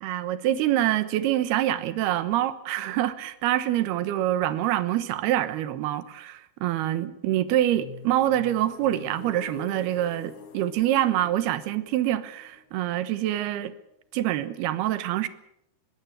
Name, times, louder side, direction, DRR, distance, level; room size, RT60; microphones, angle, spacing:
voice 1, 0.0-13.7 14.1-15.3, right 13 dB, 85° right, 3.1 m, -26 dB
sound 1, 7.7-13.5, left 5 dB, 80° left, 4.8 m, -46 dB
22.0 x 16.5 x 8.1 m
omnidirectional pair, 4.4 m